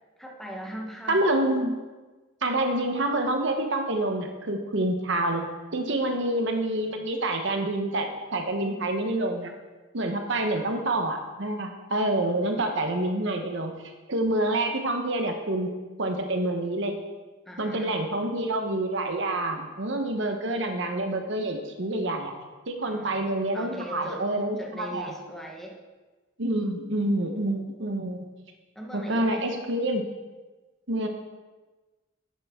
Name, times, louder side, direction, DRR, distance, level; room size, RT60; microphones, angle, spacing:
voice 1, 0.2-1.3 10.5-10.7 17.5-18.1 22.8-24.3 24.6-25.8 28.7-29.5, equal, ahead, 0 dB, 1.1 m, -40 dB
voice 2, 1.1-1.8 2.4-9.5 9.9-13.7 14.1-15.7 16.0-17.0 17.6-22.3 22.7-25.1 26.4-28.2 28.9-30.1 30.9-31.1, right 1 dB, 60° right, 5 dB, 1.0 m, -27 dB
10.5 x 8.7 x 3.7 m, 1.2 s
head